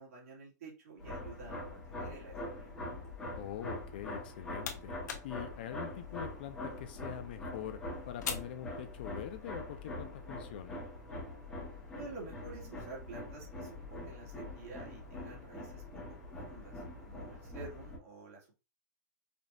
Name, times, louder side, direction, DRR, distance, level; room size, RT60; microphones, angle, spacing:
voice 1, 0.0-2.8 11.9-18.6, right 3 dB, 55° right, -3 dB, 2.1 m, -50 dB
sound 1, 1.0-18.0, left 1 dB, 5° left, 1.1 m, -44 dB
voice 2, 3.4-5.0 5.2-7.8 8.1-10.8, left 10 dB, 35° left, 10 dB, 0.3 m, -44 dB
sound 2, 4.1-9.4, left 6 dB, 75° left, 1.0 m, -46 dB
sound 3, 12.4-14.2 14.5-15.1 16.2-16.3 16.6-16.7 16.9-17.0, right 2 dB, 85° right, 2.2 m, -56 dB
5.1 x 2.7 x 2.5 m, 0.30 s
hypercardioid pair, 175°, 10 cm